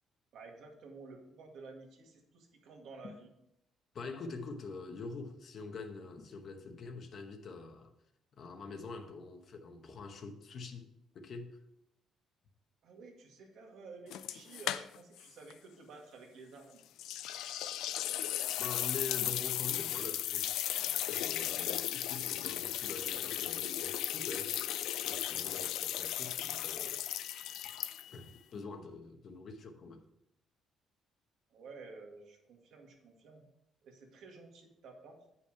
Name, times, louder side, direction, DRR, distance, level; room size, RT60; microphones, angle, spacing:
voice 1, 0.3-3.3 12.8-16.8 31.5-33.4 33.8-35.2, right 3 dB, 65° right, 1.9 m, -52 dB
voice 2, 3.9-7.9 8.3-10.9 11.1-11.6 18.6-20.6 20.9-24.6 25.0-27.6 28.1-28.2 28.5-30.0, left 4 dB, 40° left, 1.0 m, -45 dB
sound 1, 14.1-15.2 15.5-15.6 17.0-28.3, left 12 dB, 85° left, 0.4 m, -36 dB
8.4 x 5.7 x 4.6 m
cardioid pair, 160°, 0 cm